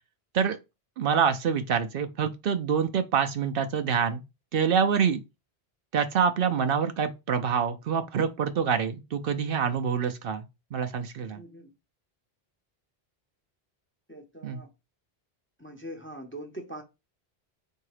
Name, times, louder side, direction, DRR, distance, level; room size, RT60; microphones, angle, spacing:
voice 1, 1.0-4.2 4.5-5.2 5.9-10.5 10.7-11.4 14.4-14.6, right 7 dB, 65° right, 0.7 m, -26 dB
voice 2, 11.3-11.7 14.1-14.7 15.6-16.8, right 1 dB, 15° left, 0.6 m, -42 dB
3.7 x 2.8 x 4.7 m
omnidirectional pair, 1.1 m